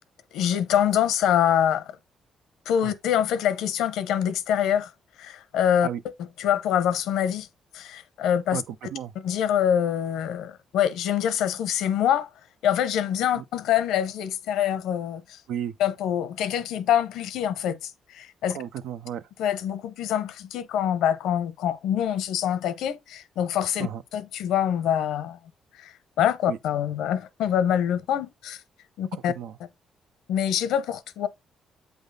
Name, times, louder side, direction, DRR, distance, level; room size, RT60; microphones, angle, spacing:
voice 1, 0.3-1.9 2.7-4.9 5.2-5.9 6.4-7.5 7.7-8.6 9.2-12.3 12.6-15.4 15.8-18.6 19.4-25.4 25.8-28.6 29.0-29.3 30.3-31.3, left 9 dB, 85° left, 0.7 m, -25 dB
voice 2, 8.5-9.1 13.3-13.4 15.5-15.8 18.5-19.2 23.8-24.0 26.5-26.6 29.1-29.6, right 10 dB, 85° right, 0.5 m, -34 dB
8.0 x 3.5 x 3.8 m
cardioid pair, 90°, 0 cm